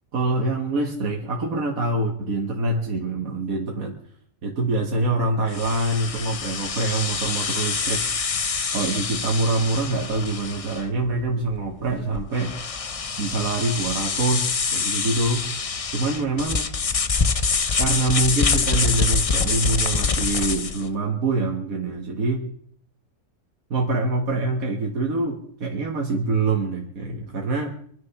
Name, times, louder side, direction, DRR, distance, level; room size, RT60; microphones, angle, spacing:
voice 1, 0.1-4.0 4.4-8.0 8.7-12.6 13.2-15.5 15.9-16.7 17.8-22.5 23.7-27.7, right 2 dB, 70° right, 1 dB, 1.9 m, -25 dB
sound 1, 5.5-20.9, left 5 dB, 35° left, 0.6 m, -26 dB
24.5 x 10.0 x 5.8 m, 0.62 s
omnidirectional pair, 1.5 m